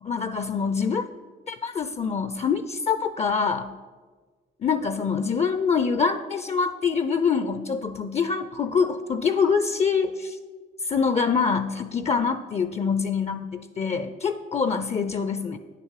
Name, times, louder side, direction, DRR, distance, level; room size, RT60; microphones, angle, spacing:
voice 1, 0.0-1.0 1.5-3.7 4.6-10.4 10.8-15.6, left 5 dB, 35° left, 10 dB, 0.4 m, -25 dB
9.3 x 6.7 x 4.8 m, 1.5 s
cardioid pair, 90°, 20 cm